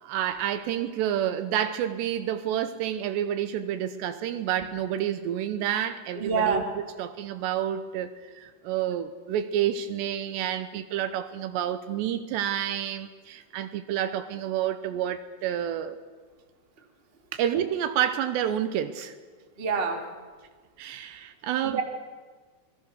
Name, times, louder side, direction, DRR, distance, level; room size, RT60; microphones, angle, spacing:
voice 1, 0.0-6.6 7.0-16.0 17.4-19.2 20.8-21.8, right 10 dB, 75° right, 2.8 m, -29 dB
voice 2, 6.1-6.6 19.6-20.0 21.6-21.8, right 5 dB, 55° right, 0.6 m, -26 dB
27.5 x 21.5 x 6.5 m
omnidirectional pair, 5.6 m